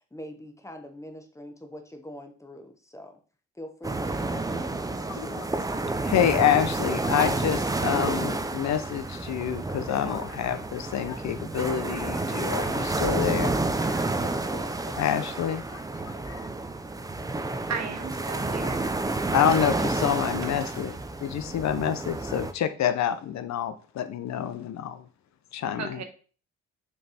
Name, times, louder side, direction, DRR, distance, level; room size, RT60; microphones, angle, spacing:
voice 1, 0.0-3.2 3.5-4.7, equal, 10° left, 1.1 m, -43 dB
sound 1, 3.8-22.5, right 2 dB, 10° right, 0.6 m, -30 dB
voice 2, 5.1-5.5 5.8-13.5 13.9-16.5 18.6-18.7 19.3-20.9 21.2-25.0 25.5-26.0, left 9 dB, 65° left, 0.7 m, -28 dB
voice 3, 17.7-18.9 20.4-20.7 25.8-26.0, right 5 dB, 65° right, 1.2 m, -35 dB
6.5 x 3.4 x 4.2 m
cardioid pair, 90°, 30 cm